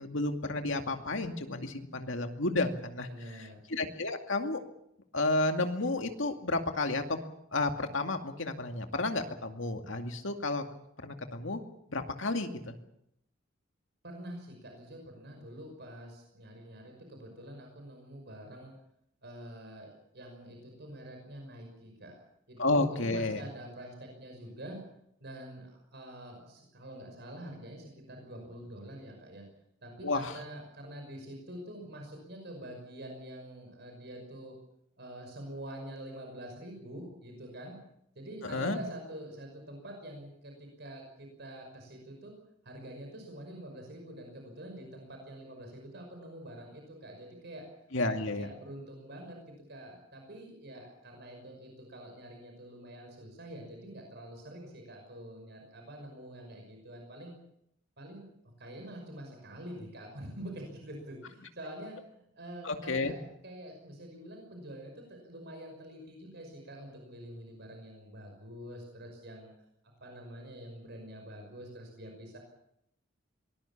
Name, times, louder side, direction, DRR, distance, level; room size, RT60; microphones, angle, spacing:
voice 1, 0.0-4.6 5.1-7.2 7.5-10.6 11.0-11.6 11.9-12.8 22.6-23.4 30.0-30.4 38.4-38.8 47.9-48.5 62.6-63.1, left 2 dB, 70° left, 5 dB, 2.4 m, -31 dB
voice 2, 3.1-3.6 14.0-18.7 19.2-24.8 25.2-29.5 29.8-34.5 35.0-37.8 38.1-42.3 42.6-47.7 48.1-57.3 58.0-58.2 58.6-63.2 63.4-69.5 70.0-72.4, right 1 dB, 55° right, 2 dB, 5.8 m, -46 dB
23.5 x 20.0 x 7.3 m, 0.77 s
head